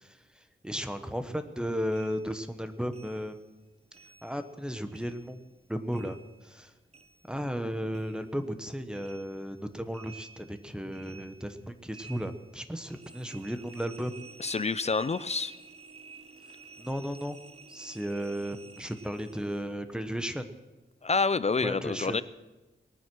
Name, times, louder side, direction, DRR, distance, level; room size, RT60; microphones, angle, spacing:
voice 1, 0.0-3.6 4.2-5.4 5.7-6.7 7.3-14.2 16.8-17.4 17.7-20.5 21.6-22.2, equal, 5° right, 9 dB, 1.0 m, -35 dB
sound 1, 1.9-4.6 4.9-7.7 7.9-19.7, right 4 dB, 30° right, 0.8 m, -52 dB
voice 2, 14.4-15.5 21.0-22.2, left 4 dB, 35° left, 16 dB, 0.4 m, -28 dB
20.0 x 9.2 x 6.1 m, 1.1 s
wide cardioid pair, 110°, 20 cm